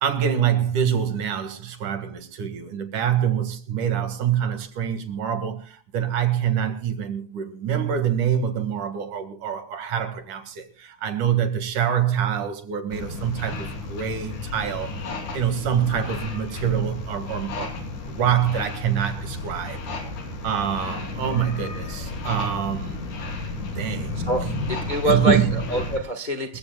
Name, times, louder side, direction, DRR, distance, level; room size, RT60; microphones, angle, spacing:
voice 1, 0.0-15.0 15.3-17.7 18.2-19.9 20.4-23.0 23.7-24.5 25.0-25.5, right 9 dB, 85° right, 3.4 m, -25 dB
sound 1, 12.9-26.0, left 3 dB, 85° left, 4.5 m, -33 dB
voice 2, 24.3-26.6, right 1 dB, 45° left, 0.5 m, -25 dB
27.0 x 15.0 x 2.3 m
omnidirectional pair, 3.5 m